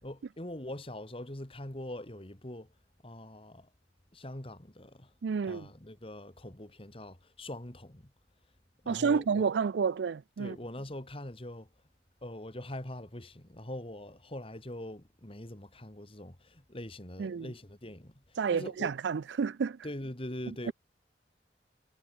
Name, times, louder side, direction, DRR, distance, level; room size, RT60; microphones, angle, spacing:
voice 1, 0.0-2.7 3.0-3.7 4.1-5.1 5.4-8.1 8.8-9.5 10.4-11.7 12.2-18.9 19.8-20.7, left 1 dB, 30° left, 2.5 m, -43 dB
voice 2, 5.2-5.7 8.9-10.6 17.2-17.5 18.4-19.8 20.7-20.8, right 5 dB, 85° right, 0.4 m, -30 dB
head